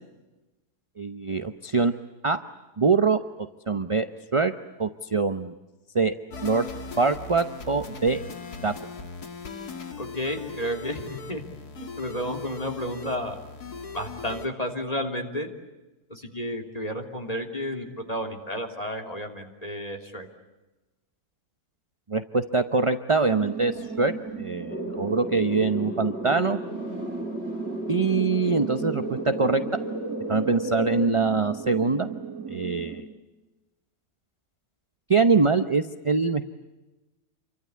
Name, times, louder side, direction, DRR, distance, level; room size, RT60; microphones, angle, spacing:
voice 1, 1.0-2.0 2.2-2.4 2.8-3.2 3.7-4.1 4.3-4.5 4.8-5.5 5.9-6.1 6.4-6.7 7.0-8.2 8.6-8.7 22.1-26.6 27.9-29.6 30.3-32.1 32.5-33.1 35.1-36.4, right 4 dB, 25° right, 9 dB, 0.7 m, -23 dB
sound 1, 6.3-14.5, left 4 dB, 75° left, 2.7 m, -39 dB
voice 2, 10.0-11.4 11.7-13.3 13.9-15.5 16.1-20.3, equal, 25° left, 3 dB, 3.3 m, -32 dB
sound 2, 23.3-33.0, right 6 dB, 60° right, 2.9 m, -36 dB
sound 3, 24.7-31.1, left 1 dB, 45° left, 1.6 m, -34 dB
28.5 x 24.5 x 8.5 m, 1.1 s
omnidirectional pair, 1.7 m